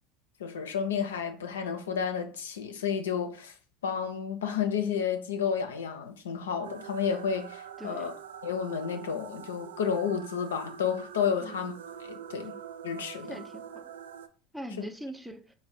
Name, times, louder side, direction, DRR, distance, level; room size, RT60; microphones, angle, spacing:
voice 1, 0.4-3.5 3.8-8.1 8.4-11.7 12.0-12.5 12.8-13.4 14.8-14.9, left 7 dB, 85° left, 0.5 m, -31 dB
sound 1, 6.6-14.3, right 8 dB, 85° right, 0.3 m, -44 dB
voice 2, 7.8-8.1 11.4-11.6 13.3-13.9 14.5-15.4, equal, 5° right, 0.6 m, -41 dB
3.5 x 2.1 x 4.1 m
hypercardioid pair, 80°, 0 cm